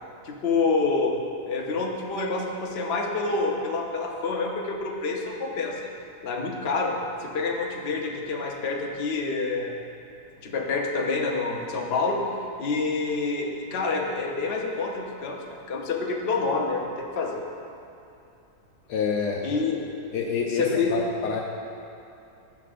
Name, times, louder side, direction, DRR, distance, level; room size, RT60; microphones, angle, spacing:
voice 1, 0.2-1.1 1.5-5.9 6.2-9.7 10.4-12.2 12.6-17.4 19.4-19.9 20.2-20.9, left 4 dB, 45° left, -1 dB, 0.9 m, -27 dB
voice 2, 18.9-19.4 20.1-21.4, left 5 dB, 75° left, 0 dB, 1.2 m, -27 dB
16.5 x 5.8 x 2.5 m, 2.7 s
omnidirectional pair, 1.8 m